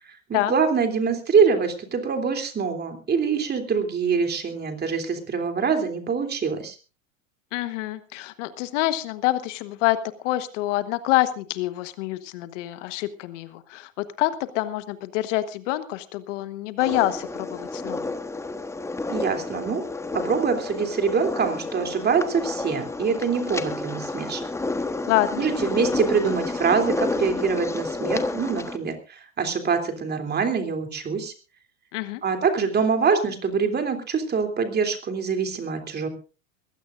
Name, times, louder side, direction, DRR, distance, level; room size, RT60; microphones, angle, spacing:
voice 1, 0.3-6.7 19.1-19.8 20.1-24.4 25.4-31.3 32.2-36.1, right 5 dB, 25° right, 5 dB, 3.2 m, -24 dB
voice 2, 7.5-18.0 25.1-25.4 31.9-32.2, left 15 dB, 60° left, 13 dB, 1.4 m, -26 dB
sound 1, 16.8-28.8, left 3 dB, 5° left, 1.2 m, -30 dB
22.0 x 16.0 x 2.6 m, 0.33 s
hypercardioid pair, 105°, 40 cm